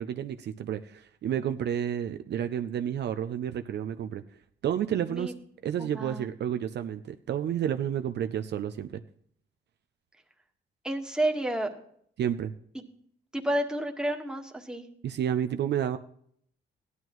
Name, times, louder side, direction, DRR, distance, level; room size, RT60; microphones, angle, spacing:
voice 1, 0.0-4.2 4.6-5.3 5.6-9.0 12.2-12.5 15.0-16.0, right 9 dB, 60° right, 9 dB, 0.5 m, -30 dB
voice 2, 5.8-6.3 10.8-11.7 12.7-12.8 13.3-14.8, right 1 dB, 5° right, 2 dB, 1.5 m, -30 dB
15.5 x 11.0 x 3.1 m, 0.65 s
cardioid pair, 90°, 20 cm